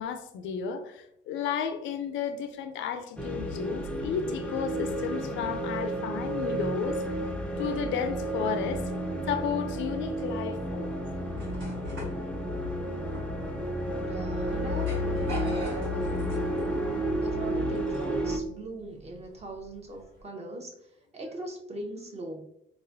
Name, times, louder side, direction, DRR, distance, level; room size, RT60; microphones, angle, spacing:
voice 1, 0.0-7.0 7.6-8.8 9.2-11.0, left 7 dB, 75° left, 7 dB, 0.4 m, -33 dB
sound 1, 3.2-18.4, equal, 5° left, 0.5 m, -31 dB
sound 2, 10.8-20.2, right 1 dB, 75° right, 1.2 m, -45 dB
voice 2, 13.9-16.1 16.6-20.7 21.1-22.4, right 2 dB, 35° right, 1 dB, 0.8 m, -40 dB
3.9 x 2.2 x 2.5 m, 0.77 s
cardioid pair, 90°, 20 cm